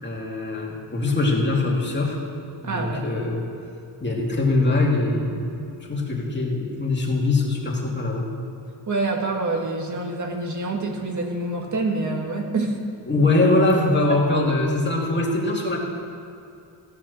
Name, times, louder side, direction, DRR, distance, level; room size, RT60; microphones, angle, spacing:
voice 1, 0.0-2.2 2.6-3.5 4.0-5.5 5.9-8.3 13.1-15.8, left 2 dB, 25° left, -2 dB, 2.4 m, -22 dB
voice 2, 2.6-3.0 8.9-12.7, right 2 dB, 40° right, 2 dB, 1.8 m, -26 dB
16.0 x 7.6 x 6.5 m, 2.6 s
cardioid pair, 110°, 45 cm